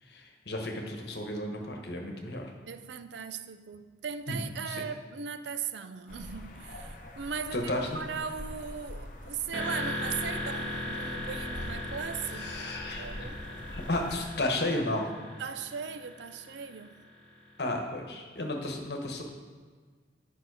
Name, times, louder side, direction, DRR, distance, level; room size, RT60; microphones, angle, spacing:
voice 1, 0.0-2.5 4.3-4.4 4.6-4.8 7.5-8.0 12.2-13.3 13.7-15.1 17.6-19.2, left 1 dB, 65° left, 2 dB, 1.2 m, -33 dB
voice 2, 2.7-12.6 13.0-13.4 15.4-17.0, right 6 dB, 80° right, 11 dB, 0.5 m, -38 dB
sound 1, 6.1-14.2, left 1 dB, 45° left, 0.9 m, -44 dB
sound 2, 9.5-17.3, left 1 dB, 10° left, 1.8 m, -38 dB
9.1 x 5.7 x 4.8 m, 1.5 s
head